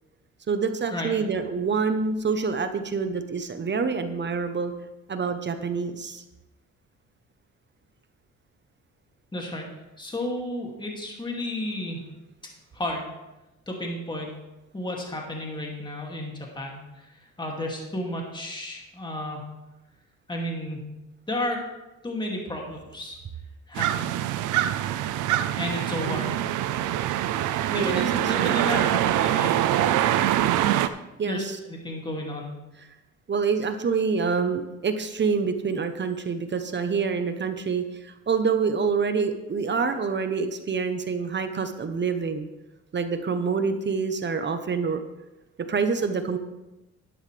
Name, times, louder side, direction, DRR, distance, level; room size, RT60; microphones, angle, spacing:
voice 1, 0.5-4.7 5.1-6.2 26.0-26.3 27.7-28.1 28.4-28.9 31.2-31.6 33.3-42.5 42.9-45.0 45.7-46.4, right 5 dB, 35° right, 8 dB, 0.9 m, -27 dB
voice 2, 9.3-9.7 10.0-12.0 12.7-13.1 13.7-14.3 14.7-17.1 17.4-19.5 20.3-20.9 21.3-21.6 22.0-23.2 23.7-24.1 25.6-26.4 27.7-29.5 31.3-32.5, left 1 dB, 15° left, -1 dB, 2.5 m, -32 dB
sound 1, 23.8-30.9, right 12 dB, 90° right, 0.6 m, -24 dB
11.5 x 11.0 x 3.4 m, 1.0 s
cardioid pair, 90°, 30 cm